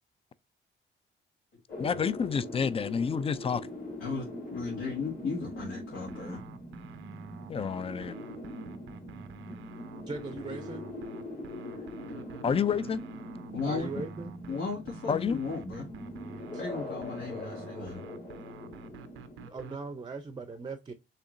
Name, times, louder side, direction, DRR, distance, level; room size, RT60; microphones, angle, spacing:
sound 1, 1.7-19.5, left 1 dB, 45° left, 2.4 m, -42 dB
voice 1, 1.8-3.7 7.5-8.2 12.4-13.0 15.1-15.4, left 6 dB, 30° left, 0.4 m, -29 dB
voice 2, 4.0-6.4 8.4-8.5 11.7-12.5 13.5-13.9 14.5-15.9 16.6-18.0 19.5-19.6, left 4 dB, 85° left, 1.9 m, -36 dB
sound 2, 6.1-19.8, right 6 dB, 90° right, 0.6 m, -50 dB
voice 3, 10.1-10.9 13.6-14.3 16.5-16.6 19.5-20.9, right 4 dB, 25° right, 0.5 m, -39 dB
6.6 x 2.9 x 2.5 m
cardioid pair, 90°, 20 cm